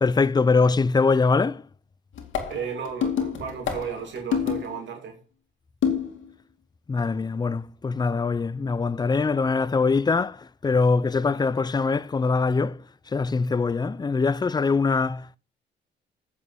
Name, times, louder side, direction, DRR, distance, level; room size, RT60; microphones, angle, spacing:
voice 1, 0.0-1.6 6.9-12.8 13.1-15.4, left 4 dB, 20° left, 0.5 m, -23 dB
sound 1, 2.1-4.8 5.8-6.3, left 7 dB, 75° left, 2.4 m, -27 dB
voice 2, 2.5-5.2, right 7 dB, 65° right, 2.4 m, -34 dB
8.7 x 7.0 x 6.9 m
cardioid pair, 90°, 20 cm